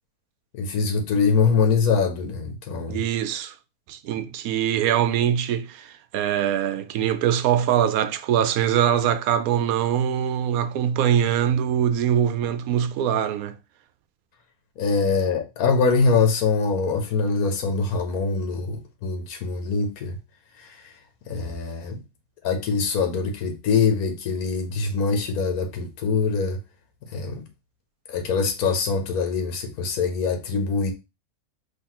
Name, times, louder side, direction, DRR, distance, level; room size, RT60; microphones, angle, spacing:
voice 1, 0.5-3.0 14.8-20.2 20.6-20.8 21.3-22.0 22.4-26.6 27.1-27.4 28.1-30.9, left 4 dB, 85° left, 1.4 m, -23 dB
voice 2, 2.9-3.5 3.9-13.6, right 9 dB, 80° right, 1.0 m, -23 dB
5.7 x 3.1 x 3.0 m
omnidirectional pair, 1.5 m